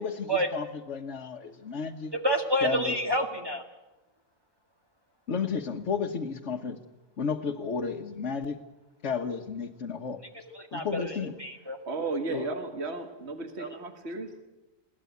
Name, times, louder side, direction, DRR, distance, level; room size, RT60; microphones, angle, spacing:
voice 1, 0.0-2.1 2.6-2.9 5.3-6.8 7.2-8.6 9.0-10.2 10.7-11.3 12.3-12.5, left 5 dB, 65° left, 0 dB, 1.5 m, -32 dB
voice 2, 2.1-3.6 10.5-11.8 13.6-13.7, equal, 20° right, 2 dB, 1.9 m, -28 dB
voice 3, 11.9-14.3, right 3 dB, 55° right, 6 dB, 2.1 m, -34 dB
21.5 x 17.5 x 9.4 m, 1.0 s
omnidirectional pair, 1.4 m